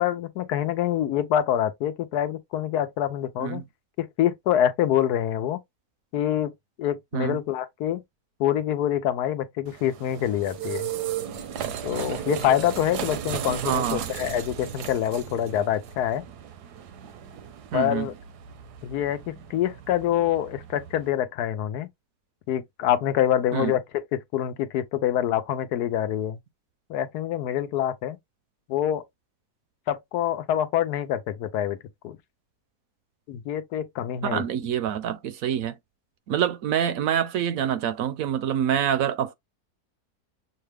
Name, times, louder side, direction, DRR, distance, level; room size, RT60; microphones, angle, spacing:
voice 1, 0.0-3.6 4.0-5.6 6.1-6.5 6.8-8.0 8.4-10.9 11.8-16.2 17.7-18.1 18.8-21.9 22.5-26.4 26.9-28.2 28.7-29.0 29.9-31.8 32.0-32.2 33.3-34.4, left 11 dB, 85° left, 1.2 m, -26 dB
sound 1, 9.7-21.1, right 9 dB, 85° right, 1.3 m, -35 dB
voice 2, 13.6-14.1 17.7-18.1 23.5-23.7 34.2-35.8 36.3-39.3, right 9 dB, 70° right, 0.9 m, -26 dB
6.4 x 2.2 x 3.3 m
omnidirectional pair, 1.7 m